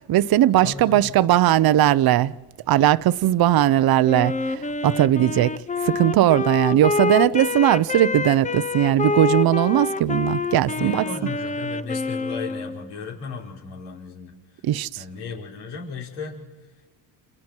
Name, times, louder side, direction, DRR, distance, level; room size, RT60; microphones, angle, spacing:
voice 1, 0.1-2.3 2.7-5.5 5.8-11.0 14.6-15.0, right 13 dB, 50° right, 0.7 m, -19 dB
voice 2, 0.6-1.1 10.7-14.3 15.0-16.4, left 5 dB, 80° left, 4.5 m, -35 dB
Wind instrument woodwind instrument, 4.0-12.9, left 4 dB, 15° left, 0.8 m, -27 dB
29.0 x 27.5 x 4.5 m
supercardioid pair, 75°, 49 cm